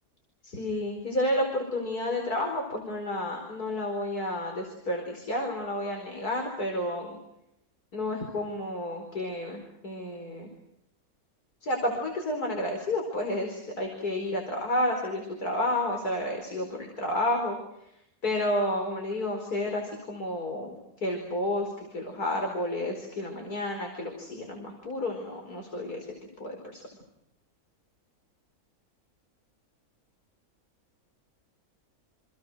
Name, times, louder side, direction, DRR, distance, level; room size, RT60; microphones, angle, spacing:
voice 1, 0.4-7.2 7.9-10.5 11.6-17.6 18.2-26.1 26.4-26.8, left 1 dB, 90° left, 2 dB, 5.3 m, -31 dB
29.0 x 28.0 x 6.4 m, 0.80 s
omnidirectional pair, 1.6 m